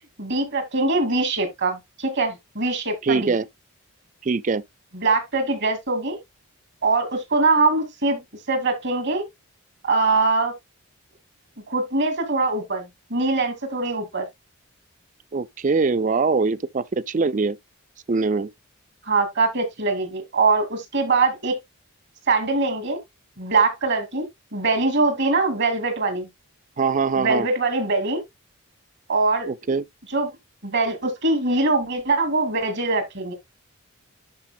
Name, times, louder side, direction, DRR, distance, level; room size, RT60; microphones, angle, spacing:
voice 1, 0.2-3.3 4.9-6.2 6.8-8.2 8.5-9.2 9.8-10.5 11.7-14.3 19.0-21.6 22.3-23.0 23.4-24.3 24.5-26.3 27.2-28.2 29.1-29.5 30.1-30.3 30.6-33.3, right 3 dB, 55° right, 2.3 m, -22 dB
voice 2, 3.0-3.5 4.2-4.6 15.3-17.6 18.1-18.5 26.8-27.5 29.5-29.8, right 4 dB, 35° right, 0.4 m, -22 dB
12.0 x 5.0 x 2.3 m
head